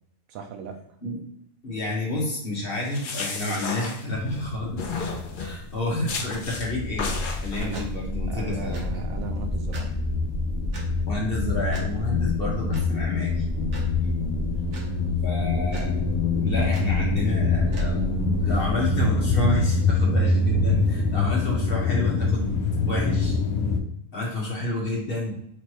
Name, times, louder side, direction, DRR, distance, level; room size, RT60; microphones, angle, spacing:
voice 1, 0.3-0.8 7.6-7.8 8.3-9.9 14.6-15.1, right 6 dB, 75° right, 4 dB, 1.0 m, -37 dB
voice 2, 1.6-4.9 5.4-8.8 11.0-13.5 15.2-15.9 16.4-22.5 22.9-23.4 24.1-25.4, left 1 dB, 40° left, -3 dB, 1.3 m, -30 dB
sound 1, 2.7-4.4 4.8-5.6 6.1-6.7 7.0-7.8, left 4 dB, 60° left, 0.5 m, -33 dB
sound 2, 4.1-5.8 6.0-23.8, left 3 dB, 75° left, 1.1 m, -25 dB
sound 3, 6.9-18.7, left 1 dB, 55° right, 1.3 m, -33 dB
3.9 x 3.2 x 3.0 m, 0.73 s
omnidirectional pair, 1.5 m